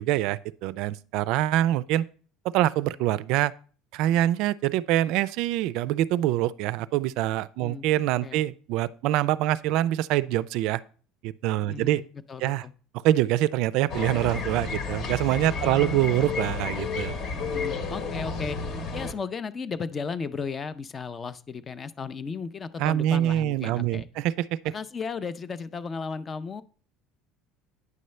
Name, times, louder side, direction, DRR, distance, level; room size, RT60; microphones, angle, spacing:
voice 1, 0.0-2.0 2.4-3.5 3.9-10.8 11.2-12.0 12.4-12.6 13.0-17.1 22.8-24.3 24.6-24.7, right 14 dB, 60° right, 0.3 m, -25 dB
voice 2, 11.6-12.7 15.5-16.4 17.3-18.6 18.9-24.1 24.6-26.6, left 5 dB, 20° left, 0.4 m, -35 dB
sound 1, 13.9-19.1, left 4 dB, 40° left, 1.1 m, -31 dB
9.4 x 6.7 x 3.2 m
cardioid pair, 160°, 0 cm